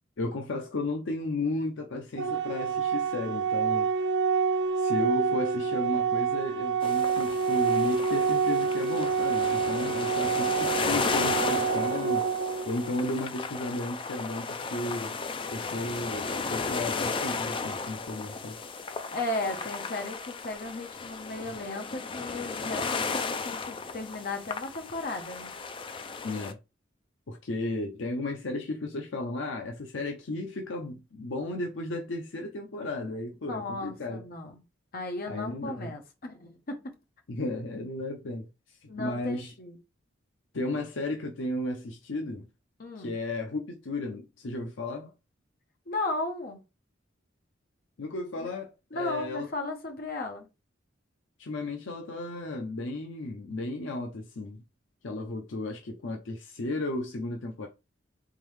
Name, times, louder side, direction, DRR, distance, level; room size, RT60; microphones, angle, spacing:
voice 1, 0.2-3.9 4.8-12.3 12.6-15.2 15.5-18.6 26.2-26.6 27.3-34.2 35.3-35.9 37.3-39.5 40.5-42.5 43.0-45.1 48.0-49.5 51.4-54.6 55.0-57.7, left 2 dB, 75° left, 0.6 m, -34 dB
Organ, 2.2-13.2, right 6 dB, 65° right, 0.4 m, -27 dB
sound 1, 6.8-26.5, left 4 dB, 25° left, 0.4 m, -34 dB
voice 2, 19.1-25.5 33.5-34.6 34.9-36.8 38.9-39.8 42.8-43.2 45.9-46.6 48.4-48.5 48.9-50.5, left 2 dB, 50° left, 1.0 m, -35 dB
3.7 x 3.5 x 3.2 m
head